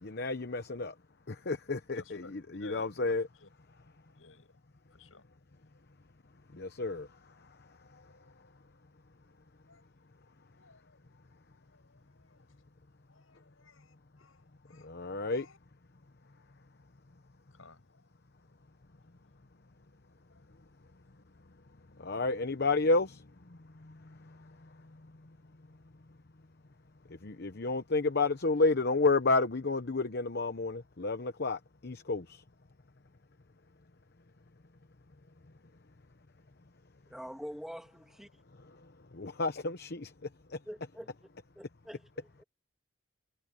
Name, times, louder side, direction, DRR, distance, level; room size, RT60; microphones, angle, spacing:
voice 1, 0.0-0.9 1.3-3.3 6.5-7.1 14.8-15.4 22.0-23.2 23.8-23.9 27.2-32.4 39.1-40.1 40.5-40.6, left 3 dB, 50° left, 0.9 m, -30 dB
voice 2, 1.9-2.9 3.4-3.5 4.1-4.5 4.9-5.2 9.6-9.8 10.5-11.0 11.6-12.5 13.1-14.9 15.3-15.6 17.5-18.1 20.3-20.4 25.9-26.4, left 3 dB, 80° left, 6.5 m, -56 dB
voice 3, 37.1-38.4 40.7-41.1 41.6-42.4, equal, ahead, 2.0 m, -45 dB
head